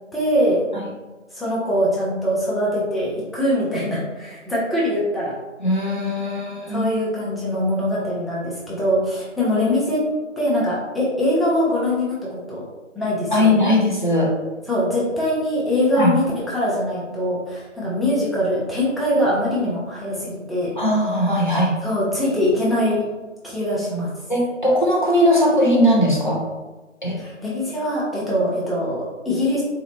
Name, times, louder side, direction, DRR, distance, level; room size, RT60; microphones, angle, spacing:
voice 1, 0.1-0.6 1.3-5.3 6.7-10.0 10.4-12.6 12.9-13.7 14.7-20.8 21.8-23.0 23.4-24.1 27.2-29.6, left 1 dB, ahead, -7 dB, 0.5 m, -22 dB
voice 2, 5.6-6.9 13.3-14.3 15.9-16.1 20.8-21.7 24.3-26.4 27.0-27.2, left 1 dB, 40° left, -3 dB, 0.7 m, -19 dB
4.0 x 2.7 x 2.9 m, 1.2 s
figure-of-eight pair, 175°, 38 cm